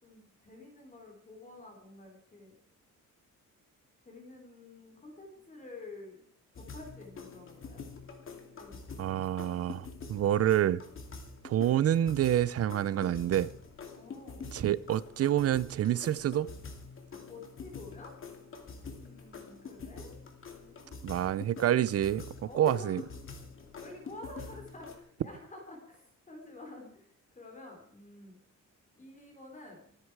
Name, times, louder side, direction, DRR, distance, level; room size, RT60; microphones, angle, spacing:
voice 1, 0.0-2.6 4.0-6.3 6.5-7.8 8.6-9.2 13.9-14.5 17.2-18.1 18.9-20.2 20.6-21.4 22.4-23.1 23.6-28.4 29.0-29.9, left 2 dB, 25° left, 2 dB, 3.5 m, -49 dB
sound 1, 6.6-25.0, left 4 dB, 40° left, 2.5 m, -46 dB
voice 2, 9.0-10.8 11.4-13.5 14.5-16.5 21.0-22.3 22.5-23.0, right 11 dB, 45° right, 19 dB, 0.6 m, -27 dB
24.5 x 9.8 x 4.7 m, 0.62 s
cardioid pair, 180°, 33 cm